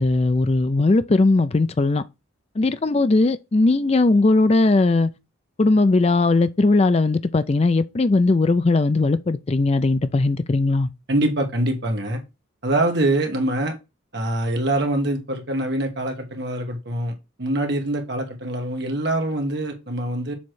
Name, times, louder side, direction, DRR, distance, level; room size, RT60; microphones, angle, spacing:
voice 1, 0.0-2.0 2.6-5.1 5.6-10.9, left 3 dB, 30° left, 0.4 m, -19 dB
voice 2, 11.1-12.2 12.6-13.7 14.1-17.1 17.4-20.3, right 1 dB, 55° right, 1.5 m, -24 dB
7.1 x 3.1 x 4.6 m
head